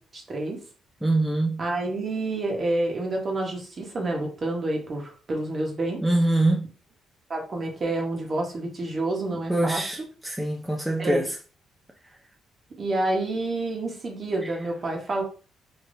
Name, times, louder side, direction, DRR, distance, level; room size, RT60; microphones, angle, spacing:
voice 1, 0.1-0.6 1.6-6.0 7.3-9.8 11.0-11.2 12.8-15.2, right 2 dB, 40° right, 1.1 m, -28 dB
voice 2, 1.0-1.6 6.0-6.7 9.5-11.4, right 1 dB, 5° right, 0.5 m, -24 dB
3.3 x 2.8 x 2.7 m
cardioid pair, 90°, 0 cm